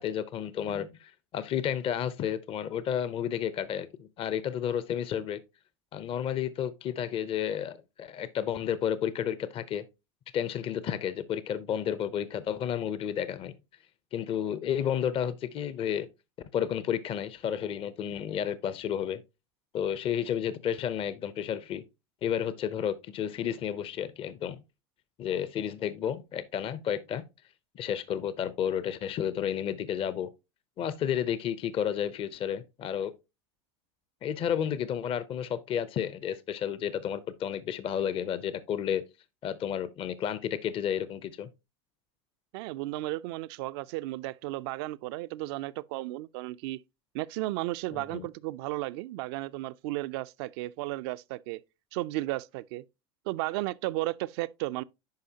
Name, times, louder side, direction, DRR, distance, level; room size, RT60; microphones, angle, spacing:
voice 1, 0.0-5.4 5.9-9.8 10.3-13.6 14.1-16.1 16.5-19.2 19.7-21.8 22.2-24.6 25.2-27.2 27.8-30.3 30.8-33.1 34.2-39.0 39.4-41.5 47.9-48.3, left 9 dB, 40° left, 0.6 m, -31 dB
voice 2, 42.5-46.8 47.1-51.6 51.9-52.8 53.3-54.8, right 18 dB, 65° right, 0.4 m, -34 dB
10.5 x 4.8 x 2.8 m
hypercardioid pair, 95°, 14 cm